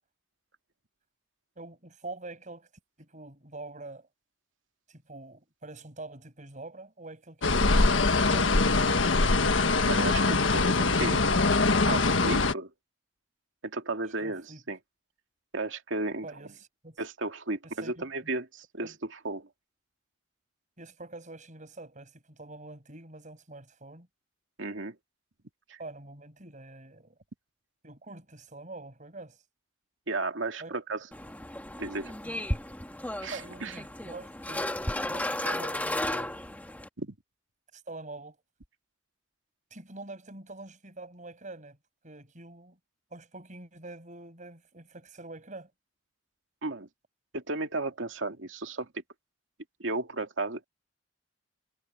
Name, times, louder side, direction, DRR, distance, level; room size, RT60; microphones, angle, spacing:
voice 1, 1.6-2.7 3.0-4.1 4.9-8.9 10.5-11.1 14.2-14.6 16.2-17.0 17.8-18.3 18.8-18.9 20.8-24.1 25.8-27.2 27.8-29.4 30.6-30.7 32.2-32.4 33.3-36.4 37.7-38.4 39.7-41.8 42.0-42.8 43.1-45.7, right 2 dB, 40° right, 7.0 m, -45 dB
sound 1, 7.4-12.5, left 3 dB, 80° left, 1.5 m, -23 dB
voice 2, 9.9-11.2 11.9-12.7 13.6-14.8 15.5-16.3 17.0-18.9 19.2-19.5 24.6-25.0 25.7-25.8 30.1-31.0 31.8-32.1 33.2-33.7 37.0-37.1 46.6-46.9 47.3-48.9 49.8-50.6, right 2 dB, 85° right, 2.3 m, -34 dB
sound 2, 31.1-36.9, left 1 dB, 10° left, 2.1 m, -34 dB
head